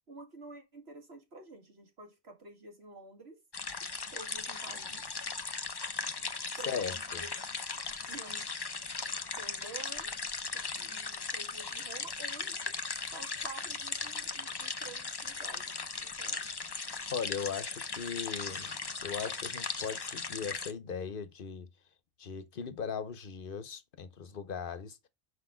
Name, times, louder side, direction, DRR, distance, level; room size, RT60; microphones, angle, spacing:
voice 1, 0.1-3.4 4.1-5.0 6.6-7.5 8.1-8.5 9.4-10.1 10.7-12.7 13.1-16.4, right 2 dB, 85° right, 2.3 m, -50 dB
sound 1, 3.5-20.7, left 4 dB, 30° left, 0.6 m, -38 dB
voice 2, 6.7-7.2 17.1-18.7 19.0-21.7 22.2-25.1, left 6 dB, 60° left, 1.1 m, -38 dB
6.2 x 5.1 x 5.0 m
omnidirectional pair, 1.1 m